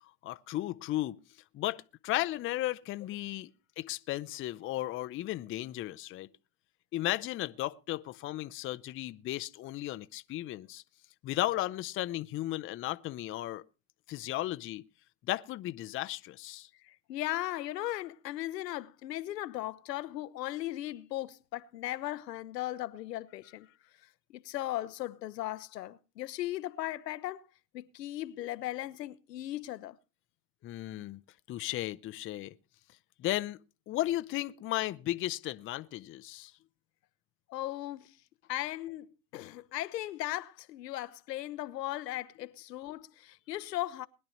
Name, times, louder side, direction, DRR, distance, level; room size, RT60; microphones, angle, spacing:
voice 1, 0.0-1.2 1.5-3.5 3.8-6.3 6.9-10.8 11.2-13.6 14.1-14.8 15.3-16.7 30.6-31.2 31.5-32.5 33.2-33.6 33.9-36.5, left 15 dB, 25° left, 0.5 m, -35 dB
voice 2, 16.8-23.7 24.3-27.4 27.7-30.0 37.5-38.2 38.5-44.1, left 15 dB, 90° left, 0.9 m, -37 dB
21.0 x 10.5 x 3.0 m
hypercardioid pair, 110°, 47 cm